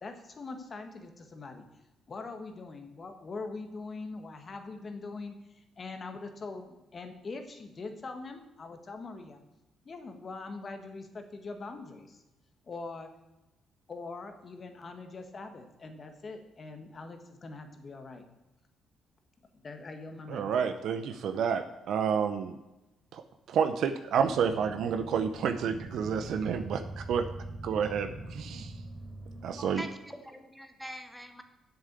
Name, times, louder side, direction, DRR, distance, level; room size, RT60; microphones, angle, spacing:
voice 1, 0.0-1.6 2.1-9.4 9.8-12.2 12.6-13.1 13.9-18.2 19.5-20.6, left 3 dB, 40° left, 6 dB, 1.6 m, -42 dB
voice 2, 20.3-22.6 23.1-27.2 27.6-28.7 29.4-29.8, right 7 dB, 75° right, 8 dB, 0.7 m, -30 dB
sound 1, 24.2-29.7, right 2 dB, 20° left, 1.6 m, -43 dB
voice 3, 29.6-31.4, equal, ahead, 7 dB, 1.3 m, -43 dB
7.5 x 7.0 x 8.2 m, 0.98 s
cardioid pair, 90°, 0 cm